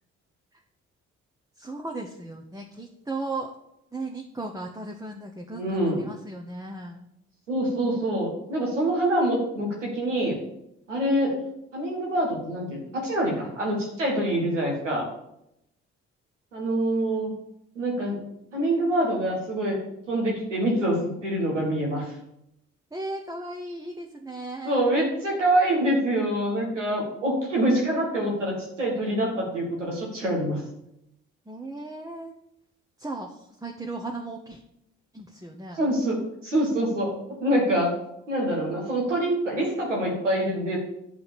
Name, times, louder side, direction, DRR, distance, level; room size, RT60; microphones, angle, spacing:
voice 1, 1.6-3.5 3.9-7.1 22.9-24.8 31.5-32.3 33.0-34.6 35.1-35.8, right 2 dB, 10° right, 1 dB, 1.2 m, -36 dB
voice 2, 5.5-6.0 7.5-10.4 10.9-11.4 11.7-15.1 16.5-17.3 17.8-18.2 18.5-19.8 20.1-22.1 24.6-30.6 35.7-37.1 37.4-37.9 38.3-40.8, right 1 dB, 85° right, -2 dB, 1.9 m, -25 dB
9.6 x 5.5 x 7.2 m, 0.80 s
figure-of-eight pair, 40°, 36 cm